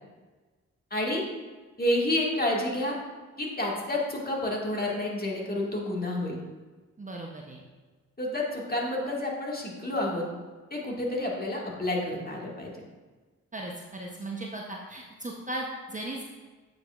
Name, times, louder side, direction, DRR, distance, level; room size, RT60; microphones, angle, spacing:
voice 1, 0.9-1.2 1.8-2.9 3.4-6.4 8.2-10.2 10.7-12.7, left 1 dB, 25° left, -2 dB, 1.9 m, -29 dB
voice 2, 7.0-7.6 13.5-16.2, right 1 dB, 25° right, -1 dB, 0.9 m, -37 dB
8.3 x 5.0 x 2.5 m, 1.3 s
supercardioid pair, 45°, 33 cm